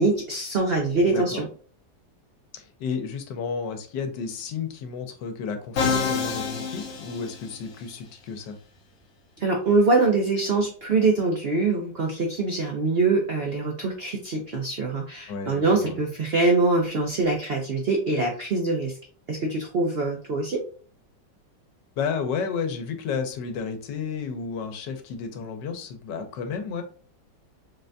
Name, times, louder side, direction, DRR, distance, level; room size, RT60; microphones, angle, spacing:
voice 1, 0.0-1.5 9.4-19.0 19.3-20.6, right 3 dB, 75° right, 1 dB, 0.5 m, -24 dB
voice 2, 1.1-1.4 2.5-8.6 15.3-16.0 22.0-26.8, left 5 dB, 85° left, 7 dB, 1.3 m, -32 dB
Musical instrument, 5.8-7.8, left 5 dB, 55° left, 0.8 m, -27 dB
3.9 x 3.3 x 2.6 m, 0.42 s
omnidirectional pair, 1.9 m